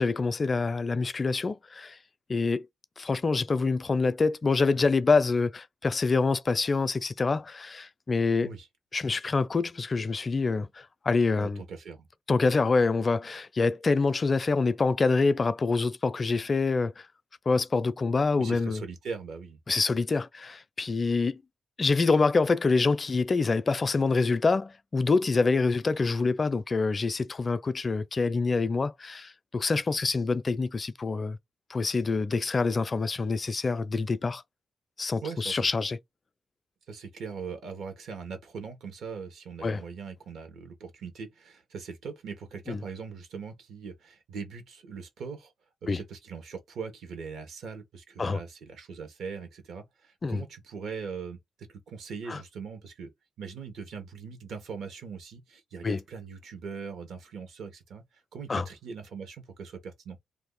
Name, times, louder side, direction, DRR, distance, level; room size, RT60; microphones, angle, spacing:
voice 1, 0.0-2.0 2.3-2.7 3.0-8.5 8.9-11.6 12.3-17.1 17.5-18.8 19.7-21.4 21.8-31.4 31.7-34.4 35.0-36.0 39.6-39.8 42.7-42.8 45.9-46.0 48.2-48.4 50.2-50.4 52.3-52.4 55.8-56.0 58.5-58.7, left 4 dB, 35° left, 0.4 m, -26 dB
voice 2, 11.4-12.1 18.4-19.6 35.2-35.7 36.9-45.5 45.9-51.4 51.7-53.1 53.4-58.0 58.3-60.2, right 5 dB, 80° right, 1.2 m, -40 dB
2.7 x 2.4 x 3.7 m
cardioid pair, 95°, 0 cm